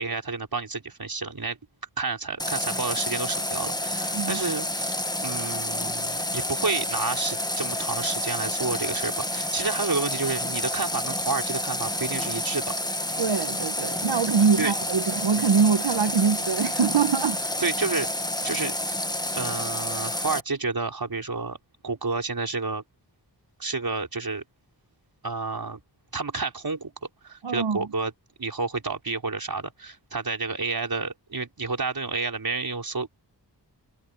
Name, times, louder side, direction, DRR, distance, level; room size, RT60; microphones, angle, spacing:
voice 1, 0.0-1.6 2.0-4.9 5.2-12.6 14.6-14.7 17.6-18.1 18.4-18.7 19.3-21.6 21.8-22.8 23.6-24.4 25.2-25.8 26.1-26.9 27.2-28.1 28.4-33.1, right 3 dB, 55° right, 4.9 m, -30 dB
Water tap faucet, 2.4-20.4, left 1 dB, 10° left, 1.6 m, -29 dB
voice 2, 13.2-17.4 27.4-27.8, right 6 dB, 90° right, 1.2 m, -23 dB
wide cardioid pair, 65°, 41 cm